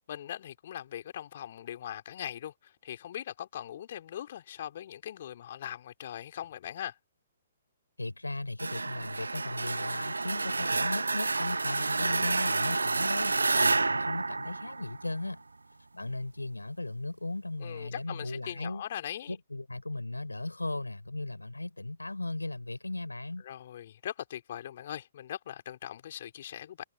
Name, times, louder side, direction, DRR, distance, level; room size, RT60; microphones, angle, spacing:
voice 1, 0.1-7.0 17.6-19.4 23.4-26.8, left 11 dB, 50° left, 4.0 m, -40 dB
voice 2, 8.0-15.4 15.9-18.8 19.3-23.4, left 2 dB, 85° left, 5.9 m, -37 dB
sound 1, 8.6-15.3, right 3 dB, 75° right, 0.7 m, -29 dB
figure-of-eight pair, 125°, 0 cm